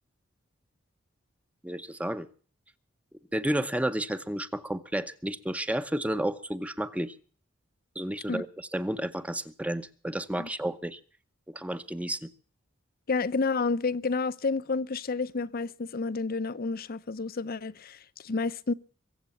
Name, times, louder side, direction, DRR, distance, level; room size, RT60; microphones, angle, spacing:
voice 1, 1.6-2.3 3.3-7.1 8.0-11.0 11.5-12.3, right 1 dB, 5° right, 0.7 m, -31 dB
voice 2, 13.1-18.7, left 4 dB, 45° left, 0.6 m, -30 dB
23.0 x 8.0 x 7.1 m
head